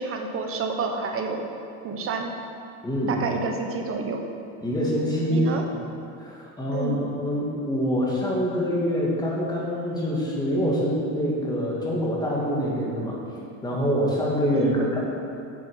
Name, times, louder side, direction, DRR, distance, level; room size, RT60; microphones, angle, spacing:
voice 1, 0.0-1.4 1.8-2.3 3.1-4.3 5.3-5.6 6.7-7.0 14.5-14.8, right 4 dB, 35° right, 3 dB, 1.0 m, -29 dB
voice 2, 2.8-3.2 4.6-5.8 6.2-13.2 13.6-15.0, equal, 10° left, -4 dB, 1.9 m, -25 dB
7.9 x 7.0 x 5.6 m, 2.6 s
cardioid pair, 140°, 36 cm